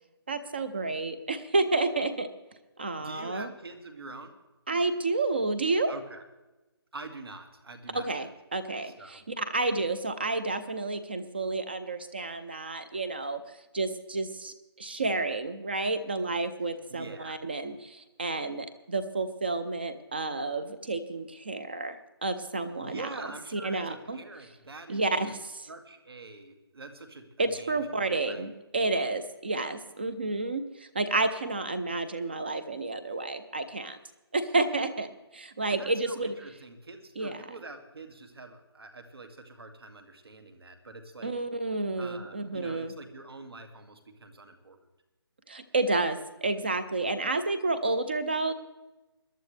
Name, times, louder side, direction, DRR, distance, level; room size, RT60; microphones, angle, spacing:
voice 1, 0.3-2.3 2.8-3.5 4.7-5.9 7.9-22.0 22.2-23.1 23.5-24.2 24.9-25.4 27.4-34.0 34.3-36.3 37.2-37.4 41.2-42.9 45.5-48.5, right 3 dB, 25° right, 11 dB, 0.6 m, -30 dB
voice 2, 3.0-4.3 5.9-6.2 6.9-8.3 8.8-9.2 16.7-17.4 22.8-25.3 25.7-27.8 28.1-28.5 35.7-41.3 42.0-44.8, right 3 dB, 70° right, 6 dB, 2.4 m, -45 dB
21.5 x 11.5 x 3.3 m, 1.1 s
hypercardioid pair, 175°, 13 cm